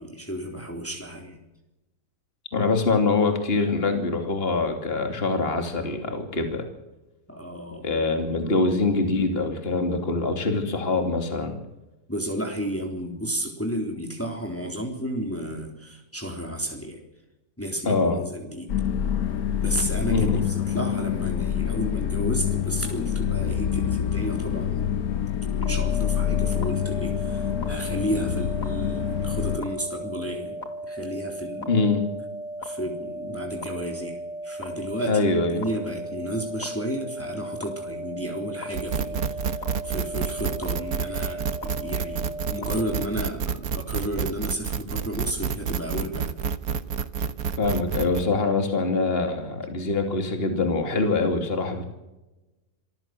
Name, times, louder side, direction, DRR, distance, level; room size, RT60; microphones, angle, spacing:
voice 1, 0.0-1.4 7.3-8.0 12.1-17.0 17.6-18.7 19.6-24.8 25.6-30.6 30.8-31.7 32.6-35.2 35.5-39.5 39.8-46.3, equal, 10° left, 1 dB, 3.6 m, -32 dB
voice 2, 2.5-6.7 7.8-11.6 17.8-18.2 20.1-20.2 31.7-32.1 35.0-35.6 47.6-51.8, left 3 dB, 35° left, 5 dB, 3.0 m, -24 dB
sound 1, 18.7-29.6, left 9 dB, 70° left, 1.4 m, -26 dB
sound 2, 25.6-43.1, right 1 dB, 85° left, 2.9 m, -36 dB
sound 3, 38.7-48.2, right 6 dB, 70° right, 1.4 m, -29 dB
26.0 x 15.0 x 7.8 m, 1.0 s
omnidirectional pair, 1.7 m